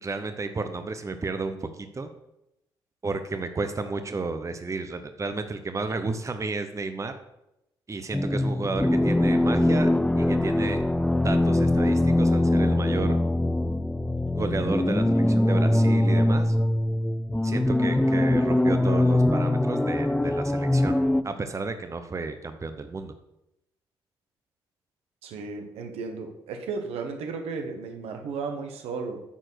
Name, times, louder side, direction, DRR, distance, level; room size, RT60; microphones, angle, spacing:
voice 1, 0.0-2.1 3.0-7.1 7.9-9.9 10.2-10.8 11.1-13.2 14.3-16.6 17.4-23.1, right 3 dB, 30° right, 8 dB, 0.9 m, -32 dB
sound 1, 8.1-21.2, left 1 dB, 5° left, 0.5 m, -22 dB
voice 2, 25.2-29.2, right 4 dB, 75° right, 4 dB, 1.3 m, -34 dB
9.1 x 4.5 x 6.4 m, 0.86 s
hypercardioid pair, 50°, 10 cm